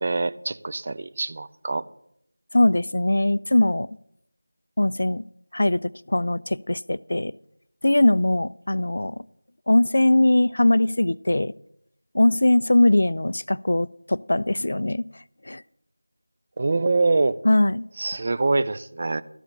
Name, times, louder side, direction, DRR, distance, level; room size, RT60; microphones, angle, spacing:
voice 1, 0.0-1.9 16.6-17.4 18.0-19.2, right 3 dB, 35° right, 14 dB, 0.4 m, -24 dB
voice 2, 2.5-3.9 4.8-5.2 5.5-7.3 7.8-9.2 9.7-11.5 12.1-15.6 17.4-17.8, left 1 dB, 55° left, 20 dB, 0.3 m, -21 dB
12.5 x 5.0 x 6.6 m, 0.76 s
figure-of-eight pair, 170°, 0 cm